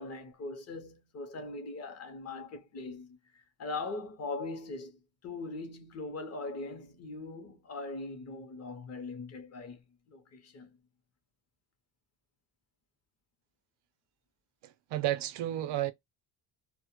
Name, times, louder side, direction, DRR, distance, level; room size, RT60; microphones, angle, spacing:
voice 1, 0.0-9.8 10.1-10.7, left 3 dB, 35° left, 0.6 m, -41 dB
voice 2, 14.6-15.9, right 13 dB, 70° right, 0.5 m, -32 dB
2.1 x 2.1 x 2.9 m
cardioid pair, 160°, 43 cm